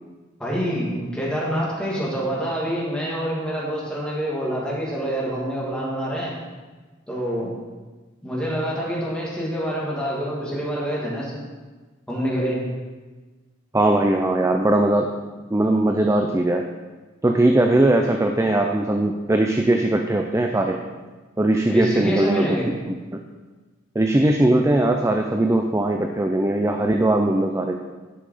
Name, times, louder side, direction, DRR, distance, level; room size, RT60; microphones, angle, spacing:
voice 1, 0.4-6.3 7.1-7.5 8.2-11.4 12.1-12.6 21.7-22.7, equal, 5° left, -6 dB, 2.4 m, -26 dB
voice 2, 13.7-15.1 15.5-16.6 17.2-20.8 21.4-23.2 23.9-27.8, right 1 dB, 15° right, 4 dB, 0.4 m, -20 dB
11.0 x 5.7 x 4.9 m, 1.3 s
head